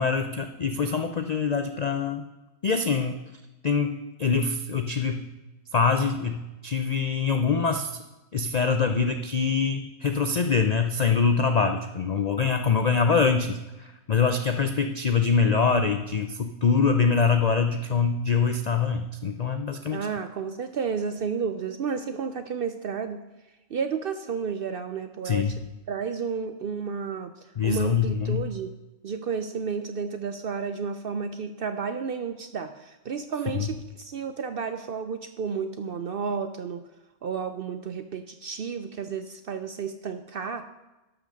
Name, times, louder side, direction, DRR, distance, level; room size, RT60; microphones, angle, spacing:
voice 1, 0.0-2.3 2.6-3.2 3.6-5.3 5.7-7.9 8.3-20.1 25.2-25.6 27.6-28.5 33.5-33.7, left 5 dB, 80° left, 7 dB, 0.3 m, -24 dB
voice 2, 19.9-23.2 23.7-25.6 25.9-27.3 27.6-28.7 29.0-36.8 37.2-40.6, right 6 dB, 65° right, 9 dB, 0.6 m, -31 dB
12.0 x 5.9 x 6.4 m, 1.0 s
omnidirectional pair, 1.5 m